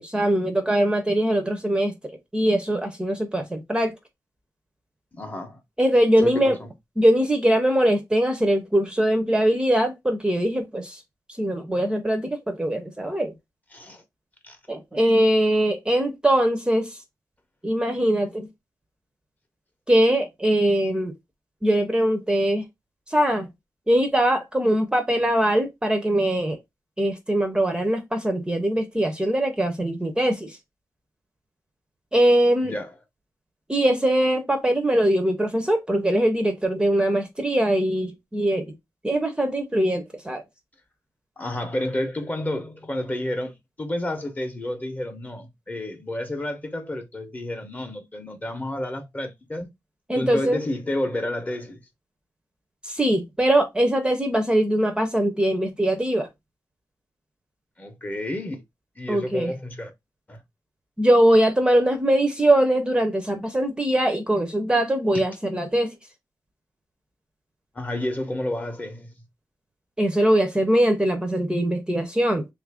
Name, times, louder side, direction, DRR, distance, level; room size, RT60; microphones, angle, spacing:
voice 1, 0.0-1.9 2.3-4.0 5.8-6.6 7.0-11.0 11.4-13.3 14.7-17.0 17.6-18.5 19.9-21.1 21.6-22.6 23.1-23.5 23.9-26.6 27.0-30.6 32.1-32.7 33.7-38.7 39.0-40.4 50.1-50.6 52.8-56.3 59.1-59.5 61.0-65.9 70.0-72.5, right 1 dB, 15° right, 0.6 m, -22 dB
voice 2, 5.1-5.6 6.2-6.7 13.7-14.0 14.4-14.6 32.6-32.9 41.4-49.7 50.1-51.8 57.8-58.6 59.0-59.9 60.3-60.4 67.7-69.1, left 1 dB, 25° left, 0.7 m, -30 dB
3.2 x 2.5 x 3.4 m
wide cardioid pair, 130°, 7 cm